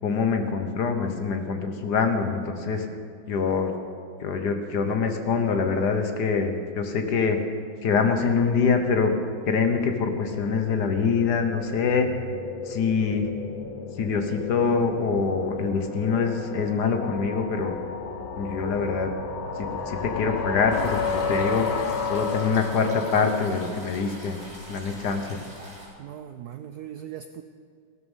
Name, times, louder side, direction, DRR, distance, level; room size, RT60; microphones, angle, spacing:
voice 1, 0.0-2.9 3.3-3.7 4.2-7.4 7.8-9.1 9.4-12.1 12.7-13.3 14.0-17.8 18.3-19.1 19.6-24.4 24.7-25.4, left 5 dB, 60° left, 6 dB, 1.5 m, -25 dB
sound 1, 9.3-24.3, left 4 dB, 80° left, 1.9 m, -33 dB
sound 2, 20.7-25.9, equal, 40° right, 3.9 m, -44 dB
voice 2, 26.0-27.4, right 10 dB, 80° right, 9 dB, 0.8 m, -39 dB
16.5 x 12.5 x 5.5 m, 2.3 s
omnidirectional pair, 2.2 m